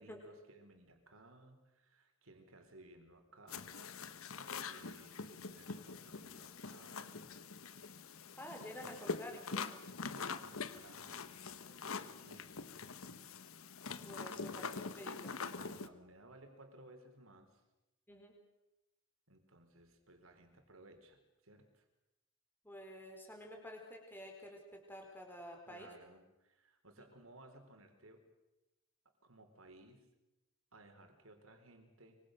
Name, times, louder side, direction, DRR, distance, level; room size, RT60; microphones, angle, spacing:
voice 1, 0.0-4.0 4.6-7.2 10.1-11.2 11.5-12.6 15.4-17.6 19.3-21.8 25.7-28.2 29.2-30.0 30.7-32.2, right 1 dB, 75° right, 6 dB, 4.2 m, -60 dB
sound 1, 3.5-15.9, left 5 dB, 80° left, 1.2 m, -45 dB
voice 2, 8.4-9.8 11.7-12.0 14.0-15.3 18.1-18.4 22.6-25.9, equal, 10° left, 2 dB, 4.4 m, -50 dB
25.0 x 24.0 x 6.7 m, 0.98 s
head